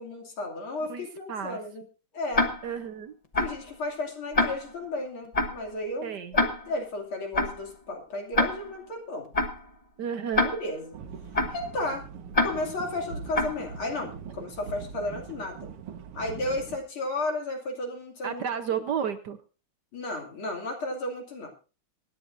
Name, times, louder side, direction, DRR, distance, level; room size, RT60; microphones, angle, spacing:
voice 1, 0.0-1.8 2.1-2.5 3.4-9.3 10.6-10.9 11.5-12.0 12.4-15.6 16.1-18.4 19.9-21.5, left 2 dB, 70° left, 2 dB, 3.5 m, -33 dB
voice 2, 0.8-1.6 2.6-3.1 6.0-6.4 10.0-10.5 18.2-19.4, right 8 dB, 60° right, 9 dB, 1.3 m, -32 dB
Tick-tock, 2.3-2.8 3.3-3.7 4.3-4.8 5.3-5.7 6.3-6.8 7.3-7.7 8.3-8.8 9.3-9.7 10.3-10.8 11.3-11.7 12.3-12.8 13.3-13.7, left 2 dB, 25° left, 0.9 m, -27 dB
sound 1, 10.9-16.8, right 6 dB, 80° right, 1.9 m, -42 dB
25.0 x 9.9 x 2.6 m, 0.34 s
omnidirectional pair, 2.4 m